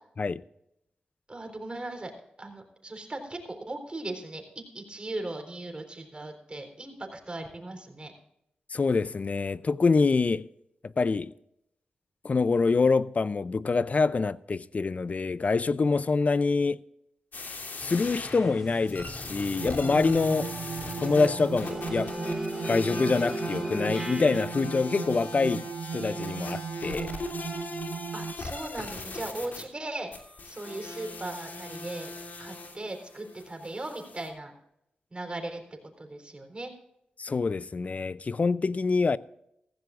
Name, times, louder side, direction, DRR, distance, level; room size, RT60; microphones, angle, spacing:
voice 1, 1.3-2.1 2.4-8.1 28.1-30.1 30.4-32.1 32.4-34.5 35.1-36.7, right 2 dB, 30° right, 4.0 m, -38 dB
voice 2, 8.7-10.5 10.8-11.3 12.2-16.8 17.8-20.5 21.0-22.1 22.7-25.7 25.9-27.1 37.2-39.2, left 4 dB, 45° left, 0.5 m, -25 dB
sound 1, 17.3-29.6 30.1-34.3, left 2 dB, 65° left, 2.9 m, -39 dB
sound 2, 17.8-24.4, right 1 dB, 15° right, 2.0 m, -38 dB
sound 3, 19.6-28.3, right 6 dB, 75° right, 0.4 m, -37 dB
15.5 x 15.5 x 2.5 m
cardioid pair, 55°, 3 cm